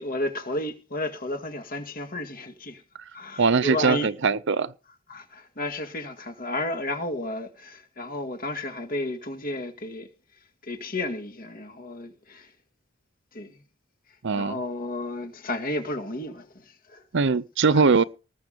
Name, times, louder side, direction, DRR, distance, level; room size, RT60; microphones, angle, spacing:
voice 1, 0.0-2.8 3.1-4.1 5.1-10.1 10.6-12.5 13.3-13.5 14.3-16.5 16.9-17.0 17.7-17.9, left 2 dB, 45° left, 2.1 m, -32 dB
voice 2, 3.4-4.7 14.2-14.6 17.1-18.0, right 4 dB, 60° right, 0.7 m, -21 dB
19.5 x 7.1 x 5.2 m
head